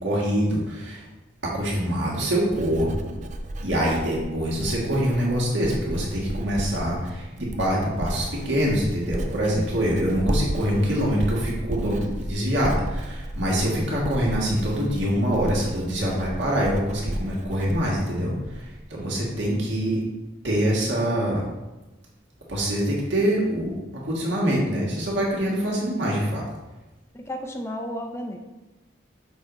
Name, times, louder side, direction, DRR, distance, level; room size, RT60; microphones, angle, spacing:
voice 1, 0.0-1.1 1.4-3.1 3.6-20.1 20.4-21.4 22.5-26.4, equal, 75° right, -4 dB, 1.9 m, -25 dB
Writing, 1.8-18.8 19.1-19.6, right 1 dB, 40° right, 0.5 m, -33 dB
voice 2, 27.1-28.4, equal, 15° left, 3 dB, 0.5 m, -33 dB
6.5 x 4.8 x 4.0 m, 1.1 s
head